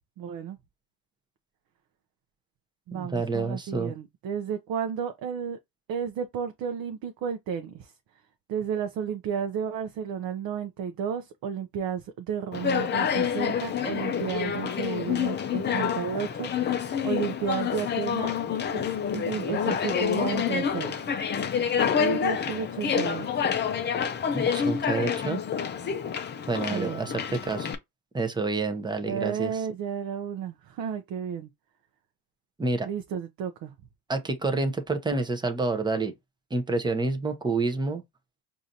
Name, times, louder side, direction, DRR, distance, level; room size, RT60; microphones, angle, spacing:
voice 1, 0.2-0.6 2.9-5.6 5.9-7.9 8.5-18.3 18.7-18.9 19.1-20.9 21.5-21.6 22.0-23.4 26.7-27.1 29.1-31.5 32.8-33.7, right 7 dB, 50° right, 0.7 m, -32 dB
voice 2, 2.9-3.9 24.3-25.4 26.5-27.7 28.1-29.5 32.6-32.9 34.1-36.1 36.5-38.0, right 3 dB, 10° right, 0.7 m, -28 dB
Conversation, 12.5-27.7, left 7 dB, 25° left, 0.5 m, -28 dB
4.8 x 2.7 x 2.7 m
cardioid pair, 120°, 47 cm